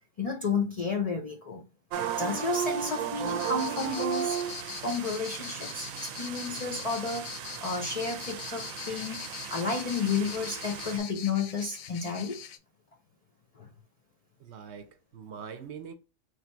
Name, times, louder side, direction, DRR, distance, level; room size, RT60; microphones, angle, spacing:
voice 1, 0.2-1.6 2.2-4.4 4.8-9.2 9.5-12.4 13.6-13.7, left 4 dB, 50° left, 0.4 m, -32 dB
sound 1, 1.9-11.0, right 8 dB, 90° right, 1.0 m, -35 dB
sound 2, 3.3-12.6, left 8 dB, 85° left, 1.0 m, -42 dB
voice 2, 14.4-15.9, right 7 dB, 65° right, 0.8 m, -43 dB
3.2 x 2.6 x 4.4 m
omnidirectional pair, 1.4 m